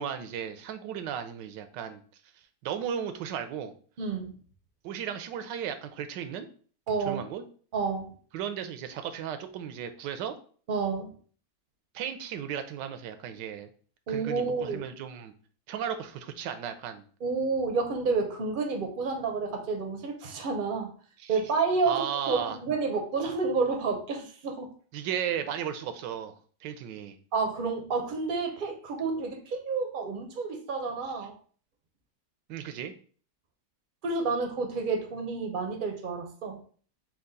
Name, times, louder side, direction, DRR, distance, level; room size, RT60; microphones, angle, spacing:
voice 1, 0.0-2.0 2.6-3.7 4.8-6.5 7.1-7.4 8.3-10.3 11.9-13.7 14.1-15.3 15.7-17.0 21.2-21.4 21.9-22.6 24.9-26.3 26.6-27.2 32.5-32.9, right 8 dB, 85° right, 9 dB, 1.2 m, -35 dB
voice 2, 4.0-4.4 6.9-7.2 7.7-8.1 10.7-11.1 14.1-14.8 17.2-20.9 21.3-24.7 27.3-31.4 34.0-36.6, right 4 dB, 50° right, 3 dB, 0.6 m, -30 dB
4.6 x 2.4 x 3.8 m, 0.44 s
omnidirectional pair, 1.9 m